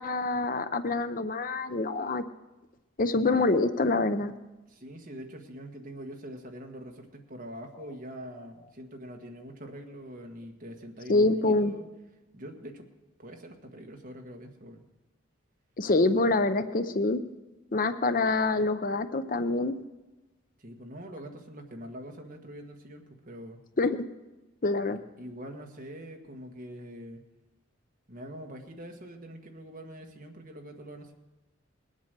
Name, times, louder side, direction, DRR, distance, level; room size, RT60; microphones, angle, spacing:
voice 1, 0.0-2.2 3.0-4.3 11.1-11.7 15.8-17.2 17.7-19.8 23.8-24.1 24.6-25.0, left 2 dB, 40° left, 10 dB, 0.6 m, -26 dB
voice 2, 4.7-11.9 12.3-12.9 13.2-14.8 20.6-23.6 24.9-27.2 28.1-31.1, equal, 40° right, 3 dB, 1.5 m, -44 dB
20.0 x 8.2 x 6.7 m, 1.1 s
head